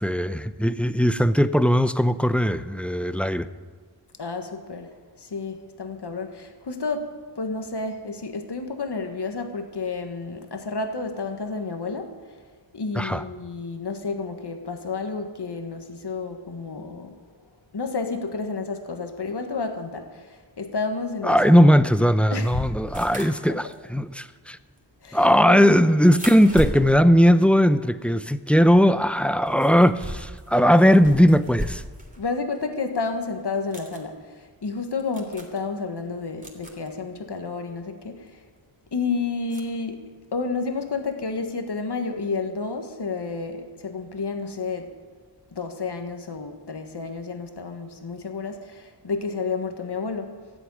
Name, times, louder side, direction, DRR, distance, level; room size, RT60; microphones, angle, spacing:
voice 1, 0.0-3.5 13.0-13.2 21.2-24.6 25.1-31.8, equal, 5° left, 12 dB, 0.6 m, -18 dB
voice 2, 4.2-12.4 12.7-17.2 17.7-21.7 22.3-22.7 23.5-23.6 25.0-25.6 32.2-38.4 38.9-44.9 45.5-50.3, left 4 dB, 65° left, 6 dB, 1.6 m, -31 dB
sound 1, 22.9-28.3 28.6-32.2 32.6-32.7 33.5-34.0 34.7-34.8 35.0-35.6 36.4-36.9 38.3-38.4 39.5-39.6, equal, 20° right, 3.0 m, -37 dB
15.5 x 8.1 x 9.7 m, 1.5 s
wide cardioid pair, 70°, 43 cm